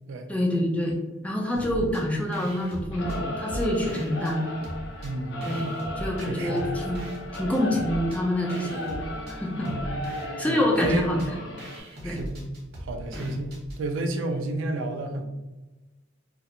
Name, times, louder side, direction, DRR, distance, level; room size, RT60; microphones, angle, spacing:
voice 1, 0.3-4.5 5.5-7.0 7.3-8.9 9.3-9.7 10.4-11.3 12.0-12.2 13.1-13.3, left 1 dB, 5° left, -1 dB, 0.4 m, -27 dB
sound 1, 1.6-2.0 2.3-4.4 4.6-6.3 6.6-13.8, equal, 55° right, 0.7 m, -39 dB
Singing / Musical instrument, 2.9-11.8, left 1 dB, 65° left, 0.5 m, -36 dB
voice 2, 5.0-5.6 6.2-6.8 9.6-9.9 10.4-11.1 12.0-12.4 12.8-15.3, right 2 dB, 75° right, 5 dB, 0.4 m, -32 dB
2.4 x 2.1 x 2.8 m, 1.1 s
head